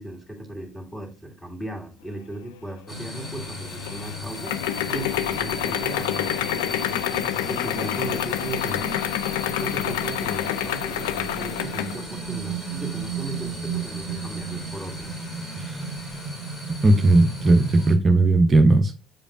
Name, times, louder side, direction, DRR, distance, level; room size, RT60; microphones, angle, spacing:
voice 1, 0.0-4.6 4.9-6.4 7.5-8.9 9.5-15.1, right 1 dB, 10° left, 2.2 m, -36 dB
sound 1, 2.9-18.0, right 2 dB, 35° left, 2.7 m, -34 dB
sound 2, 3.2-12.0, left 12 dB, 70° left, 0.4 m, -28 dB
voice 2, 15.6-15.9 16.8-18.9, right 2 dB, 35° right, 0.7 m, -17 dB
7.3 x 5.1 x 2.6 m
figure-of-eight pair, 55°, 0 cm